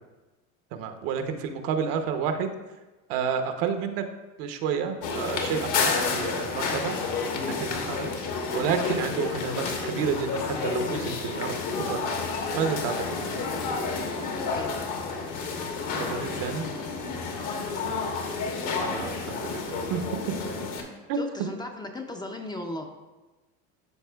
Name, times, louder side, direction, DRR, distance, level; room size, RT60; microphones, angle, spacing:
voice 1, 0.7-2.5 3.1-4.0 4.4-6.9 7.3-8.1 8.5-12.1 12.5-13.2 16.0-16.7 18.8-20.0 21.1-21.2, right 7 dB, 70° right, 7 dB, 0.9 m, -30 dB
sound 1, 5.0-20.8, left 4 dB, 55° left, 1.2 m, -30 dB
voice 2, 14.1-14.8 17.4-17.6 21.1-22.9, left 1 dB, 10° left, 3 dB, 0.5 m, -37 dB
12.5 x 4.2 x 2.3 m, 1.1 s
supercardioid pair, 110°, 37 cm